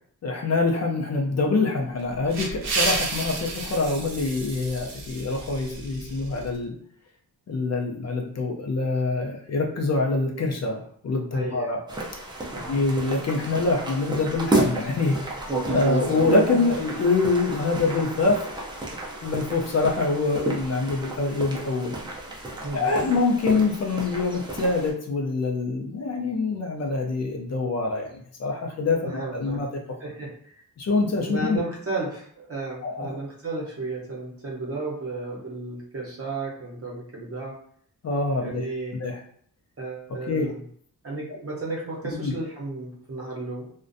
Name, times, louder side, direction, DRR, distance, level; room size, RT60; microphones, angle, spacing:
voice 1, 0.2-6.8 7.5-11.8 12.7-15.2 15.7-18.5 19.2-21.9 22.7-29.7 30.8-31.6 32.8-33.2 38.0-38.7 39.0-39.2 40.3-40.5 42.0-42.3, left 3 dB, 50° left, 0 dB, 0.4 m, -25 dB
sound 1, 2.0-6.5, right 3 dB, 85° right, 0.7 m, -31 dB
voice 2, 11.3-11.8 12.5-12.8 22.6-23.1 29.0-29.6 30.0-30.3 31.3-37.5 38.4-39.0 39.8-40.6 41.0-43.7, right 2 dB, 40° right, -3 dB, 0.8 m, -33 dB
sound 2, 11.9-24.9, right 2 dB, 15° right, 0.4 m, -31 dB
2.4 x 2.1 x 2.5 m, 0.62 s
wide cardioid pair, 165°, 35 cm